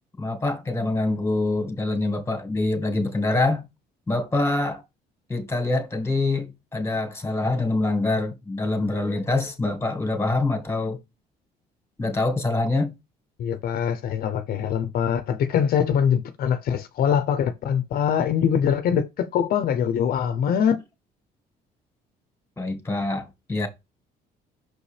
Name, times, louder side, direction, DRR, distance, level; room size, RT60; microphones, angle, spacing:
voice 1, 0.2-3.6 4.1-4.8 5.3-11.0 12.0-12.9 22.6-23.7, left 2 dB, 15° left, 2.0 m, -25 dB
voice 2, 13.4-20.8, left 8 dB, 60° left, 0.8 m, -23 dB
6.2 x 5.3 x 3.4 m
cardioid pair, 110°, 17 cm